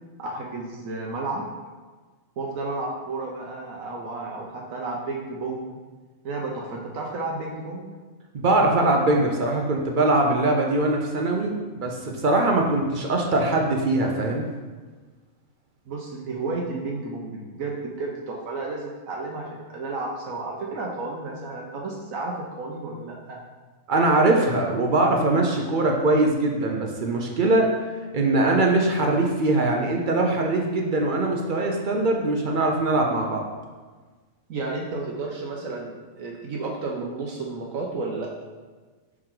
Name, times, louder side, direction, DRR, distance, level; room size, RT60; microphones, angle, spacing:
voice 1, 0.2-1.4 2.4-5.7 6.2-7.9 15.9-23.4 34.5-38.3, right 3 dB, 70° right, -1 dB, 1.1 m, -32 dB
voice 2, 8.3-14.5 23.9-27.8 28.1-33.5, right 2 dB, 50° right, 1 dB, 0.6 m, -22 dB
5.8 x 4.8 x 3.7 m, 1.4 s
omnidirectional pair, 1.5 m